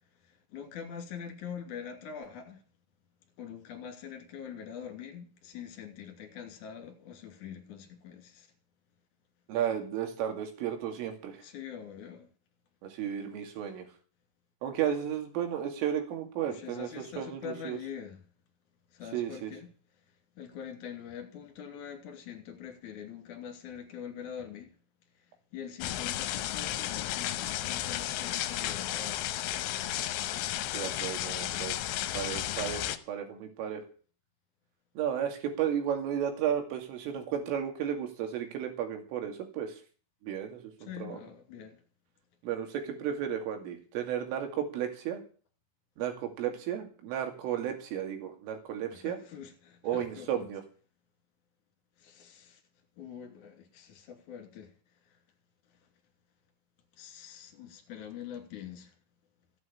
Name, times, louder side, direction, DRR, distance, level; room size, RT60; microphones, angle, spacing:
voice 1, 0.2-2.6 3.4-8.5 11.4-12.3 16.5-18.2 18.9-19.7 20.4-24.8 25.5-29.4 40.8-41.8 48.9-50.5 52.0-52.6 53.0-54.7 57.0-58.9, left 8 dB, 45° left, 3.7 m, -44 dB
voice 2, 9.5-11.4 12.8-13.9 14.6-17.8 19.1-19.5 30.7-31.8 32.1-33.8 35.0-39.8 40.2-41.2 42.4-45.2 46.0-49.2 49.8-50.6, right 9 dB, 80° right, 4.9 m, -33 dB
sound 1, 25.8-33.0, left 13 dB, 80° left, 3.3 m, -33 dB
14.0 x 9.2 x 8.5 m
omnidirectional pair, 5.8 m